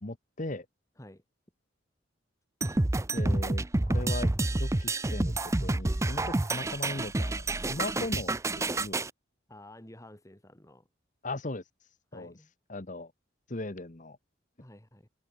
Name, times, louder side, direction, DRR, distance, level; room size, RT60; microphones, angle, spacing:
voice 1, 0.0-0.7 3.1-9.1 11.2-13.1 13.5-14.2, left 2 dB, 40° left, 1.4 m, -39 dB
sound 1, 2.6-9.1, right 2 dB, 15° right, 0.5 m, -29 dB
voice 2, 9.5-10.9 12.1-12.5 14.6-15.1, left 1 dB, 15° left, 2.4 m, -51 dB
head